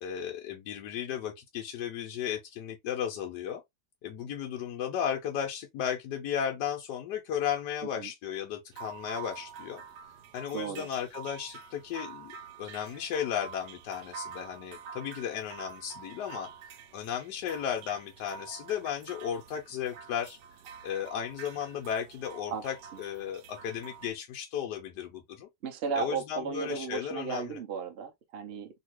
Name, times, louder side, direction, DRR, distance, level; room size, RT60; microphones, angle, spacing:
voice 1, 0.0-3.6 4.0-9.8 10.3-16.5 16.9-20.4 20.8-25.5 26.0-27.6, left 9 dB, 75° left, 1.2 m, -35 dB
sound 1, 8.7-24.1, right 6 dB, 85° right, 1.2 m, -47 dB
voice 2, 10.5-10.9 22.5-22.6 22.9-23.0 25.6-28.8, right 6 dB, 55° right, 0.7 m, -35 dB
2.8 x 2.7 x 3.0 m
omnidirectional pair, 1.8 m